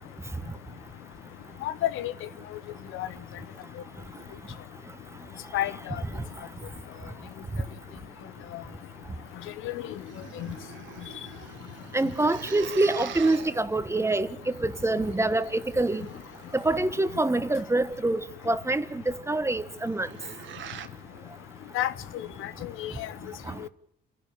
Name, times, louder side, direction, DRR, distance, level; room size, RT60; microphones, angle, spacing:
voice 1, 1.6-2.1 2.9-3.1 5.5-6.0 8.5-8.6 9.6-9.7 10.4-10.5 21.7-21.9 22.4-23.1, left 13 dB, 85° left, 0.9 m, -30 dB
sound 1, 9.7-17.3 19.7-20.9, right 10 dB, 70° right, 1.6 m, -45 dB
voice 2, 11.9-16.1 16.5-20.1 23.5-23.6, right 2 dB, 15° right, 1.3 m, -26 dB
28.5 x 11.5 x 8.7 m
cardioid pair, 90°, 20 cm